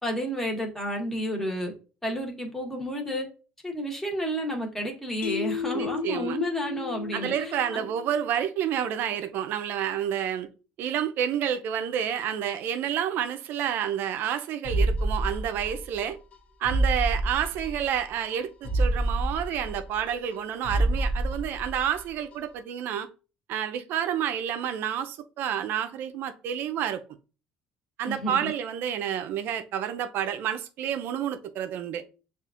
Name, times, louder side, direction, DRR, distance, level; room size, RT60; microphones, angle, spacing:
voice 1, 0.0-1.7 2.0-3.3 3.6-7.9 28.1-28.5, equal, 10° left, 1.2 m, -31 dB
Mallet percussion, 5.2-8.5, left 8 dB, 75° left, 0.3 m, -35 dB
voice 2, 5.7-6.4 7.1-10.5 10.8-16.2 16.6-23.1 23.5-27.0 28.0-32.0, right 9 dB, 65° right, 0.5 m, -29 dB
sound 1, 14.6-16.0 16.3-16.4 16.6-18.0 18.3-18.4 18.6-20.4 20.6-22.0 22.3-22.4, right 2 dB, 40° left, 0.9 m, -27 dB
6.7 x 2.4 x 2.4 m
cardioid pair, 105°, 4 cm